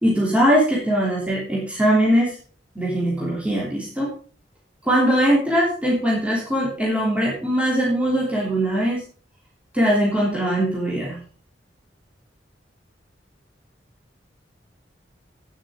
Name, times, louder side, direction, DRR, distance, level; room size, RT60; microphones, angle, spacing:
voice 1, 0.0-2.4 2.7-4.1 4.8-9.0 9.7-11.2, equal, 10° right, -5 dB, 3.2 m, -21 dB
10.5 x 9.1 x 5.0 m, 0.42 s
head